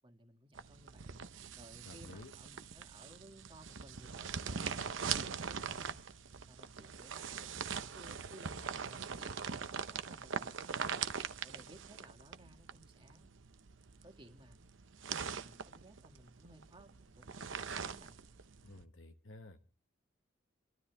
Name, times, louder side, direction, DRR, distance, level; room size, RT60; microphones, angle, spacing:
voice 1, 0.0-1.2 1.5-6.0 6.5-11.0 11.4-13.3 14.0-14.6 15.0-18.2, right 1 dB, 25° right, 1.7 m, -59 dB
sound 1, 0.5-18.8, right 6 dB, 80° right, 0.8 m, -42 dB
voice 2, 1.8-2.3 18.6-19.6, left 2 dB, 85° left, 1.1 m, -52 dB
28.5 x 12.5 x 3.4 m
head